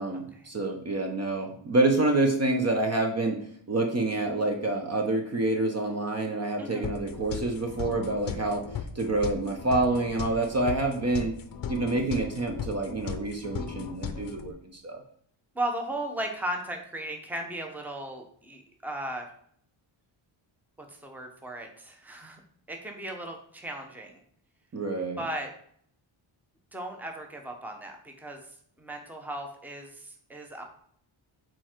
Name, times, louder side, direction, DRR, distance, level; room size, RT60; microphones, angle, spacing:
voice 1, 0.0-3.4 3.7-8.6 8.9-11.3 11.7-15.0 24.7-25.2, right 2 dB, 30° right, 3 dB, 0.8 m, -27 dB
voice 2, 6.6-6.9 15.5-19.3 21.0-22.4 22.7-24.2 25.2-25.5 26.7-28.5 28.8-30.6, right 1 dB, 5° right, 3 dB, 0.8 m, -36 dB
sound 1, 6.8-14.5, left 7 dB, 45° left, 0.6 m, -37 dB
7.0 x 4.5 x 4.5 m, 0.62 s
wide cardioid pair, 170°, 48 cm